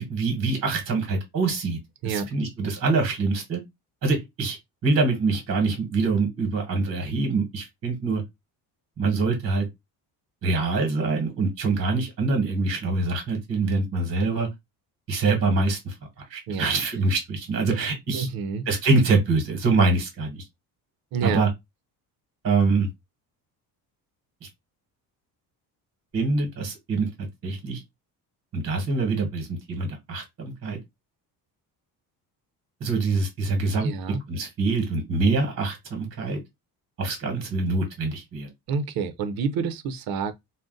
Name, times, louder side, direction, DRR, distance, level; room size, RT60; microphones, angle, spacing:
voice 1, 0.0-1.8 2.0-3.6 4.0-4.6 4.8-8.2 9.0-9.7 10.4-14.5 15.1-15.9 16.3-18.3 18.7-20.4 21.2-21.5 22.4-22.9 24.4-24.5 26.1-27.8 28.5-30.8 32.8-33.9 34.3-36.4 37.0-38.5, right 3 dB, 40° right, 1.1 m, -24 dB
voice 2, 18.1-18.7 21.1-21.4 33.8-34.2 38.7-40.3, right 6 dB, 65° right, 0.6 m, -28 dB
2.4 x 2.1 x 3.7 m
cardioid pair, 145°, 38 cm